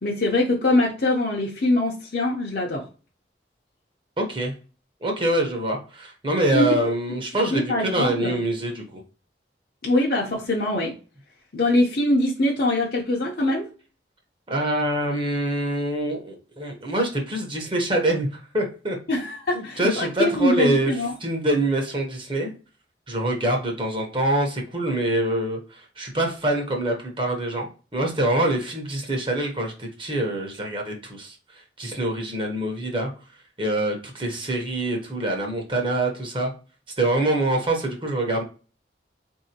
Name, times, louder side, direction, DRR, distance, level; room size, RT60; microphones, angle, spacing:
voice 1, 0.0-2.8 6.5-6.8 7.5-8.4 9.8-10.9 11.5-13.7 19.1-21.1, left 1 dB, 55° left, 0.8 m, -23 dB
voice 2, 4.2-4.5 5.0-9.0 14.5-19.0 19.5-20.9 21.2-22.5 23.1-33.1 33.6-36.5 37.0-38.4, right 1 dB, 30° right, 0.9 m, -25 dB
4.0 x 2.7 x 2.8 m
head